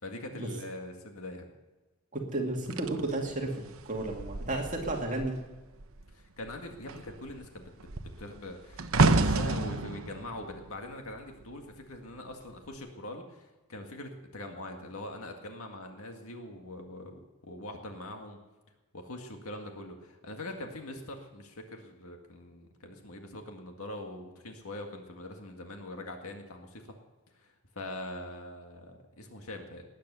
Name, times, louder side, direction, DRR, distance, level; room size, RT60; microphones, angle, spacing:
voice 1, 0.0-1.5 6.1-7.7 8.0-18.4 18.9-26.8 27.4-29.8, left 1 dB, 75° left, 3 dB, 1.9 m, -43 dB
voice 2, 2.1-5.4, right 2 dB, 35° right, 0 dB, 2.4 m, -33 dB
sound 1, 2.7-5.4 5.7-6.1 6.4-11.7 12.5-12.7, right 3 dB, 70° right, 0.9 m, -30 dB
19.0 x 10.0 x 6.8 m, 1.2 s
head